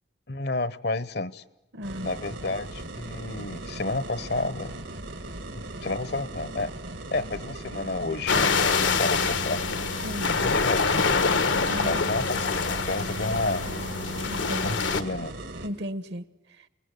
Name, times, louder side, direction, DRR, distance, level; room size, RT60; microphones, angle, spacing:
voice 1, 0.3-1.4 2.0-4.7 5.5-6.7 7.1-9.6 10.3-11.1 11.8-13.7 14.6-15.3, left 2 dB, 60° left, 16 dB, 0.9 m, -31 dB
voice 2, 1.7-2.1 10.0-10.4 11.7-12.0 14.2-14.6 15.6-16.2, equal, 65° right, 14 dB, 1.2 m, -34 dB
sound 1, 1.8-15.7, right 2 dB, 85° right, 2.5 m, -39 dB
sound 2, 8.3-15.0, left 4 dB, 90° left, 1.4 m, -25 dB
28.5 x 21.0 x 9.9 m, 0.98 s
head